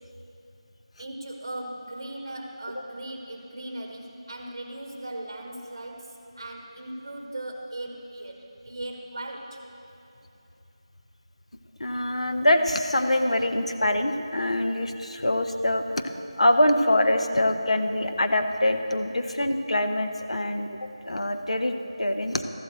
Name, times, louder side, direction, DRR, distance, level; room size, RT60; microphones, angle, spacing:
voice 1, 1.0-9.6, right 1 dB, 35° right, 1 dB, 1.6 m, -38 dB
voice 2, 11.8-16.0 16.4-22.4, left 1 dB, 80° left, 6 dB, 0.9 m, -24 dB
14.0 x 12.0 x 3.1 m, 2.8 s
figure-of-eight pair, 170°, 3 cm